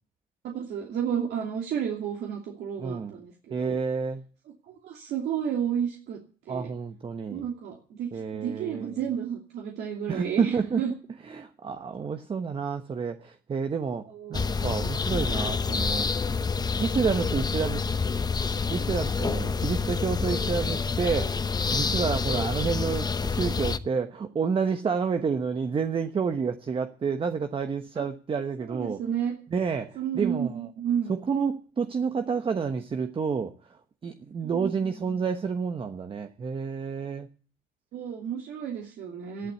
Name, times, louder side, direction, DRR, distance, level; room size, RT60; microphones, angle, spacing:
voice 1, 0.4-3.8 4.6-6.2 6.5-6.7 7.3-10.9 14.1-14.4 22.3-22.5 27.9-28.0 28.7-29.3 30.0-31.1 34.4-35.2 37.9-39.5, right 8 dB, 70° right, 0 dB, 2.8 m, -32 dB
voice 2, 2.8-3.2 3.5-4.2 6.5-7.4 8.1-9.0 10.1-10.8 11.3-14.0 14.3-16.1 16.8-17.8 18.7-21.3 21.7-29.0 29.5-30.7 31.1-33.5 34.0-37.3 39.4-39.5, right 5 dB, 30° right, 7 dB, 1.1 m, -29 dB
sound 1, 14.3-23.8, left 4 dB, 25° left, 0.9 m, -27 dB
12.0 x 11.5 x 8.3 m, 0.41 s
cardioid pair, 110°, 17 cm